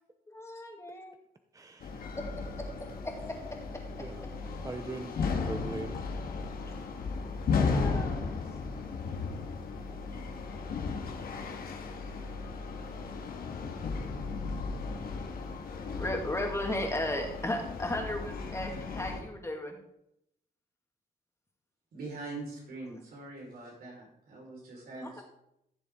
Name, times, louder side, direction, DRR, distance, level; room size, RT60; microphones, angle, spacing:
voice 1, 0.3-1.1 2.2-2.3 2.6-3.8 5.2-5.3 7.7-8.4 15.9-19.8 25.0-25.2, left 1 dB, 20° left, 2 dB, 2.3 m, -36 dB
voice 2, 1.5-2.1 4.0-4.2 4.6-6.0, right 3 dB, 20° right, 7 dB, 0.8 m, -41 dB
sound 1, 1.8-19.2, left 4 dB, 80° left, 1.7 m, -35 dB
voice 3, 21.9-25.2, right 3 dB, 90° right, -2 dB, 4.9 m, -43 dB
15.0 x 7.0 x 3.8 m, 0.77 s
cardioid pair, 100°, 15 cm